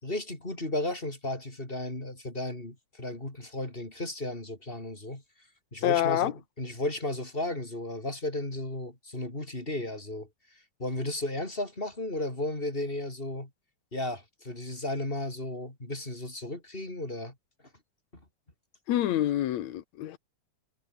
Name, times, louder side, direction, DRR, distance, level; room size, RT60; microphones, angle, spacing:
voice 1, 0.0-5.2 5.7-10.3 10.8-13.5 13.9-17.3 18.1-18.2, left 1 dB, 15° left, 5.0 m, -34 dB
voice 2, 5.8-6.3 18.9-20.2, left 12 dB, 75° left, 2.4 m, -27 dB
omnidirectional pair, 3.3 m